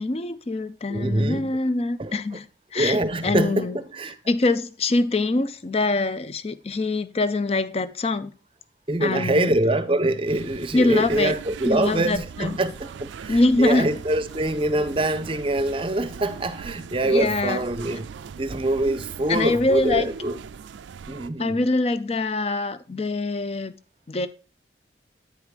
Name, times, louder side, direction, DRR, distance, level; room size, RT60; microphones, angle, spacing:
voice 1, 0.0-3.8 4.3-8.3 9.0-9.5 10.7-11.4 11.7-12.6 13.3-13.9 17.0-17.6 19.3-20.1 21.4-23.8 24.1-24.3, left 2 dB, 35° left, 0.4 m, -24 dB
voice 2, 0.9-1.5 2.0-2.2 2.7-4.2 8.9-18.1 18.4-20.4 21.1-21.6, right 1 dB, 30° right, 0.6 m, -24 dB
sound 1, 10.3-21.3, right 6 dB, 85° right, 0.4 m, -40 dB
9.5 x 4.8 x 5.0 m
head